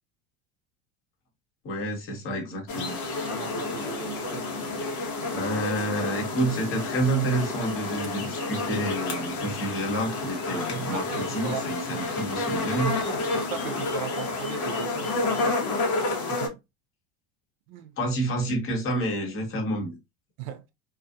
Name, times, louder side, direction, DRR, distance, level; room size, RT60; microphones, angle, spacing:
voice 1, 1.6-3.0 5.3-12.9 18.0-20.0, right 1 dB, 40° left, 1.3 m, -29 dB
sound 1, 2.7-16.5, left 3 dB, 60° left, 1.1 m, -30 dB
voice 2, 3.3-4.9 10.5-11.7 13.3-15.6 16.3-16.6 17.7-17.9 20.4-20.7, right 7 dB, 65° right, 0.5 m, -38 dB
2.5 x 2.4 x 2.4 m
hypercardioid pair, 85°, 34 cm